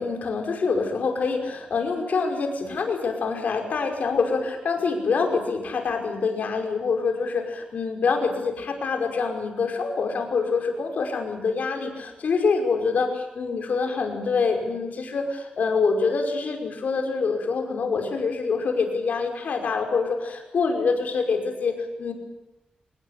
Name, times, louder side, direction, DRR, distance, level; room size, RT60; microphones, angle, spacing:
voice 1, 0.0-22.1, left 4 dB, 65° left, 4 dB, 5.5 m, -25 dB
25.5 x 20.5 x 8.4 m, 0.97 s
wide cardioid pair, 155°, 3 cm